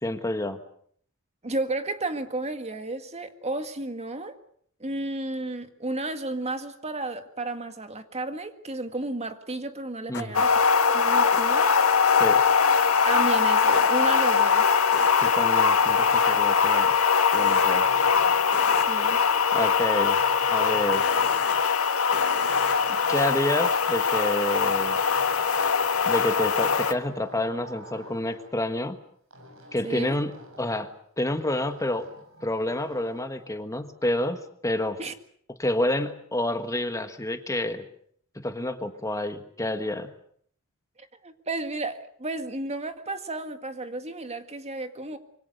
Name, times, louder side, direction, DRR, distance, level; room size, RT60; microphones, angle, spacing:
voice 1, 0.0-0.6 10.1-10.4 12.2-12.4 15.2-16.9 17.3-17.9 19.5-20.2 20.5-21.1 23.1-25.0 26.0-29.0 29.7-30.9 31.2-32.1 32.4-35.0 35.6-37.8 38.3-40.1, left 1 dB, 15° left, 1.5 m, -29 dB
voice 2, 1.4-4.4 4.8-10.6 10.9-11.7 13.0-14.7 18.9-19.2 29.8-30.2 35.0-35.1 41.0-45.2, right 2 dB, 30° right, 1.9 m, -32 dB
sound 1, 10.1-10.2 11.3-11.4 13.7-13.9 14.9-15.1 17.3-17.6 18.5-18.8 20.9-21.5 22.1-22.7, left 6 dB, 55° left, 1.0 m, -33 dB
sound 2, 10.3-26.9, left 6 dB, 90° left, 1.6 m, -22 dB
sound 3, 15.5-17.1 17.4-19.5 20.1-21.8 22.1-24.1 24.6-26.1 26.5-28.5 29.3-30.8 31.3-33.3, right 1 dB, 70° right, 6.9 m, -47 dB
26.0 x 24.0 x 6.6 m
head